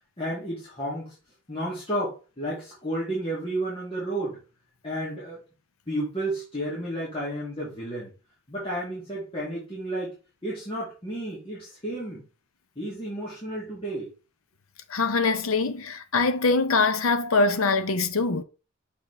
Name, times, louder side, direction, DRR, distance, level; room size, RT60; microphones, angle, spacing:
voice 1, 0.2-1.2 1.5-4.4 4.8-5.4 5.9-8.1 8.5-10.1 10.4-12.2 12.8-14.1, right 1 dB, 25° left, 2.2 m, -32 dB
voice 2, 14.9-18.4, left 3 dB, 80° left, 0.7 m, -23 dB
6.6 x 4.3 x 3.3 m
head